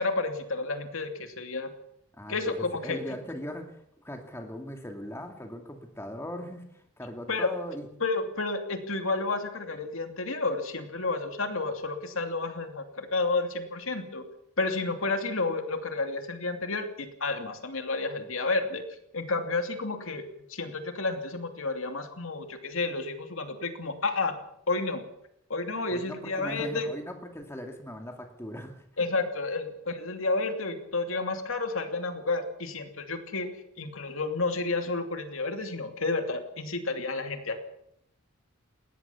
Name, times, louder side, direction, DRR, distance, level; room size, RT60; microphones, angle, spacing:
voice 1, 0.0-1.7 2.3-3.2 7.3-7.5 8.0-14.2 14.6-18.8 19.1-20.2 20.5-24.4 24.7-25.0 25.5-26.9 29.0-33.5 33.8-37.6, left 3 dB, 65° left, 6 dB, 2.7 m, -31 dB
voice 2, 2.1-7.9 25.9-29.1, equal, 10° left, 4 dB, 2.3 m, -40 dB
21.0 x 17.5 x 7.1 m, 0.76 s
head